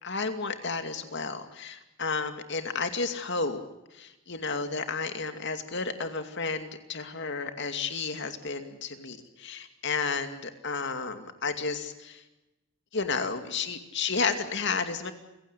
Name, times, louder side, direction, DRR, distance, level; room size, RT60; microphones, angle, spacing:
voice 1, 0.0-3.6 3.9-12.2 12.9-15.1, left 4 dB, 60° left, 8 dB, 2.4 m, -32 dB
28.5 x 16.5 x 8.3 m, 0.99 s
head